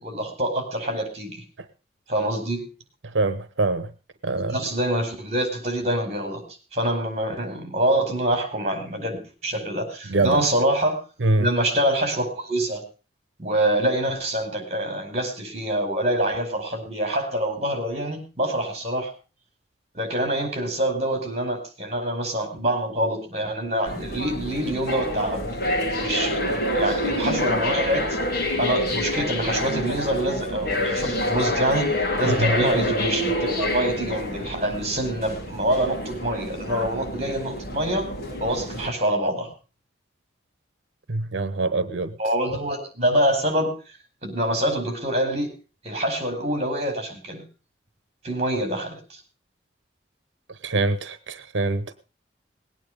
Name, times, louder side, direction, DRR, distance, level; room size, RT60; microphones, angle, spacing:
voice 1, 0.0-1.4 2.1-2.7 4.3-6.4 6.7-11.0 11.4-12.8 13.4-19.1 19.9-25.6 26.0-28.2 28.6-38.1 38.4-39.5 42.2-43.7 44.2-45.5 45.8-47.4 48.2-49.0, right 1 dB, 35° right, 4.7 m, -25 dB
voice 2, 3.1-3.9 4.2-4.5 10.1-10.4 11.2-11.5 32.2-32.5 41.1-42.1 50.6-51.8, right 2 dB, 85° right, 0.9 m, -24 dB
sound 1, 23.9-38.9, left 1 dB, 55° left, 3.0 m, -27 dB
19.5 x 9.4 x 5.2 m
head